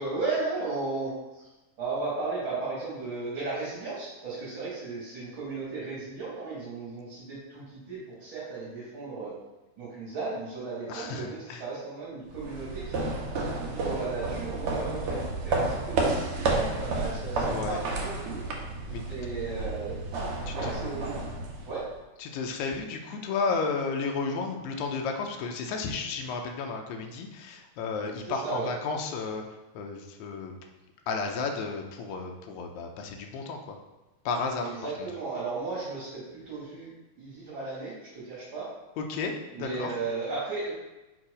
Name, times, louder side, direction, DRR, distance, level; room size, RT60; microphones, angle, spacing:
voice 1, 0.0-1.5 1.8-9.3 9.8-13.1 13.6-18.4 19.1-20.0 20.5-21.3 21.6-21.8 28.3-28.7 34.6-36.9 37.2-38.7 39.5-40.7, right 3 dB, 45° right, -8 dB, 2.1 m, -35 dB
voice 2, 10.9-11.6 17.5-17.8 18.9-19.0 20.5-20.7 22.2-29.4 29.7-30.5 31.1-33.8 34.3-35.1 39.0-39.9, left 4 dB, 80° left, 3 dB, 1.9 m, -33 dB
sound 1, 12.3-21.9, right 2 dB, 65° right, 1.4 m, -31 dB
4.8 x 4.4 x 4.9 m, 1.1 s
omnidirectional pair, 3.4 m